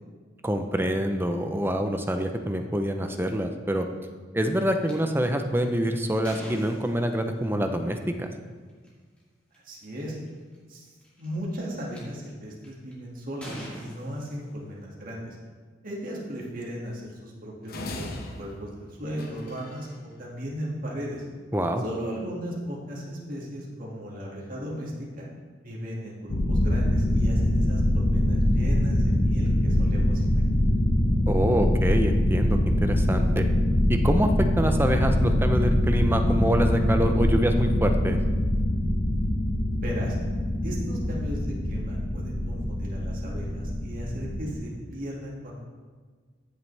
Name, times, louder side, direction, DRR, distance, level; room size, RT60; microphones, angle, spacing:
voice 1, 0.4-3.9 4.3-8.3 21.5-21.8 31.3-33.5 33.9-38.2, equal, 10° right, 6 dB, 0.6 m, -26 dB
sound 1, 4.8-4.9 5.6-7.4 8.7-8.9 9.5-9.6 9.8-10.3 11.0-12.0 12.6-12.9 13.4-14.8, equal, 5° left, 2.5 m, -43 dB
voice 2, 9.6-10.2 10.7-10.9 11.2-15.4 15.8-21.2 21.8-25.3 25.6-30.6 39.8-40.2 40.6-45.6, equal, 50° right, -3 dB, 2.1 m, -36 dB
sound 2, 17.7-19.9, left 2 dB, 55° left, 1.1 m, -39 dB
sound 3, 26.3-44.6, left 1 dB, 80° left, 1.3 m, -24 dB
14.5 x 7.1 x 3.4 m, 1.5 s
head